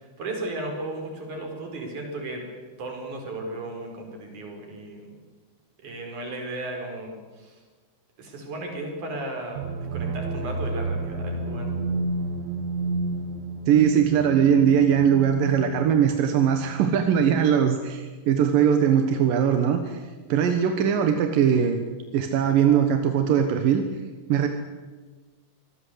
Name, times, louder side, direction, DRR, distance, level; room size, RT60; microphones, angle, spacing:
voice 1, 0.0-2.4 2.8-5.1 5.8-7.6 8.2-11.7, right 2 dB, 45° right, 2 dB, 5.9 m, -35 dB
sound 1, 9.6-17.2, right 2 dB, 90° right, 3.7 m, -31 dB
voice 2, 13.7-20.0 20.3-21.8 22.1-23.8 24.3-24.5, right 8 dB, 65° right, 6 dB, 2.5 m, -20 dB
25.0 x 18.5 x 8.0 m, 1.4 s
omnidirectional pair, 5.2 m